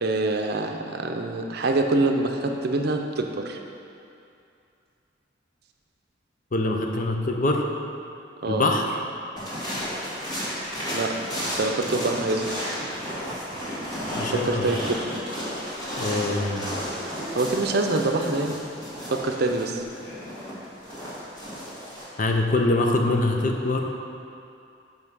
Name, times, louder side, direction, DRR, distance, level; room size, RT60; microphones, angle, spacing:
voice 1, 0.0-3.6 8.4-8.7 10.9-11.1 11.6-12.6 14.3-15.0 17.3-18.6 19.1-19.8, right 2 dB, 60° right, 3 dB, 0.6 m, -25 dB
voice 2, 6.5-7.6 8.5-8.9 14.2-14.7 16.0-16.7 22.2-23.9, left 2 dB, 45° left, 2 dB, 0.6 m, -24 dB
sound 1, 9.4-22.0, equal, 20° left, 1.8 m, -33 dB
5.5 x 5.4 x 6.3 m, 2.6 s
head